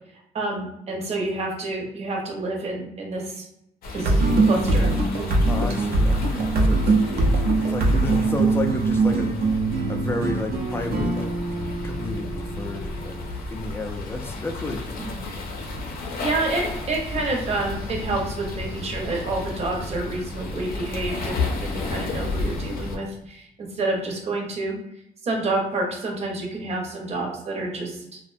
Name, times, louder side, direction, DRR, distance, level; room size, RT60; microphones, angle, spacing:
voice 1, 0.3-3.5 3.9-4.1 4.4-4.9 15.0-15.2 16.2-24.7 25.2-28.2, right 2 dB, 45° right, 1 dB, 0.7 m, -28 dB
sound 1, 3.8-23.0, left 3 dB, 75° left, 0.5 m, -33 dB
sound 2, 3.9-13.4, right 2 dB, 80° right, 0.6 m, -22 dB
voice 2, 5.5-6.8 7.1-7.3 7.7-9.6 9.9-11.3 11.8-13.2 13.5-15.0, left 2 dB, 15° left, 4 dB, 0.3 m, -31 dB
2.5 x 2.1 x 2.5 m, 0.80 s
cardioid pair, 115°, 15 cm